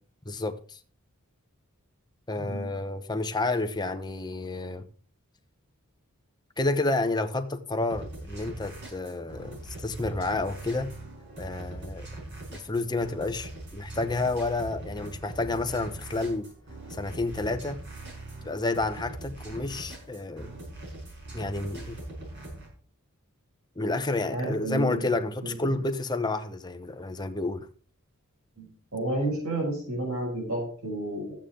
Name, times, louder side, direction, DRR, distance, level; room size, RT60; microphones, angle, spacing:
voice 1, 0.2-0.8 2.3-4.9 6.6-10.9 11.4-12.1 12.5-16.5 16.9-17.8 18.4-20.5 21.3-22.0 23.8-27.7, left 2 dB, 20° left, 0.9 m, -30 dB
voice 2, 2.4-2.7 24.3-25.1 25.4-25.6 28.6-28.7 28.9-31.3, right 1 dB, 75° right, 5.9 m, -31 dB
sound 1, 7.9-22.7, right 2 dB, 55° right, 5.4 m, -41 dB
14.0 x 8.9 x 3.8 m
head